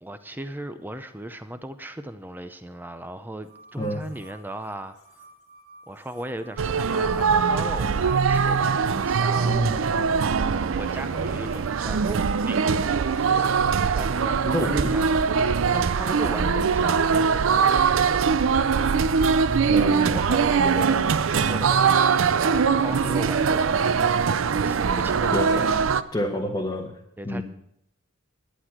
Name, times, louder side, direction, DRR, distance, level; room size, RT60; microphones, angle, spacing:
voice 1, 0.0-5.0 5.9-9.6 10.8-13.5 14.0-17.7 19.7-21.0 21.4-24.0 24.6-25.8 27.2-27.4, right 1 dB, 10° right, 0.6 m, -37 dB
sound 1, 3.4-22.5, right 2 dB, 90° left, 2.1 m, -51 dB
sound 2, 6.6-26.0, right 5 dB, 65° right, 0.5 m, -22 dB
voice 2, 9.4-10.1 14.4-14.9 19.7-20.2 25.3-25.6 26.1-26.9 27.2-27.4, left 1 dB, 20° left, 1.0 m, -29 dB
11.0 x 9.8 x 5.9 m
head